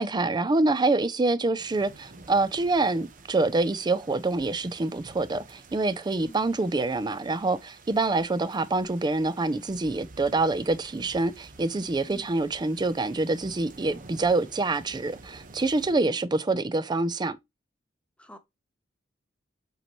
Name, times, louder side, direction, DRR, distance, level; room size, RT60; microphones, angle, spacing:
voice 1, 0.0-17.4, right 3 dB, 25° right, 0.4 m, -26 dB
sound 1, 1.6-15.9, right 3 dB, 45° right, 0.8 m, -50 dB
voice 2, 6.2-6.4 12.1-12.3 15.9-16.2 18.2-18.4, left 1 dB, 5° left, 0.8 m, -45 dB
7.9 x 4.4 x 3.0 m
head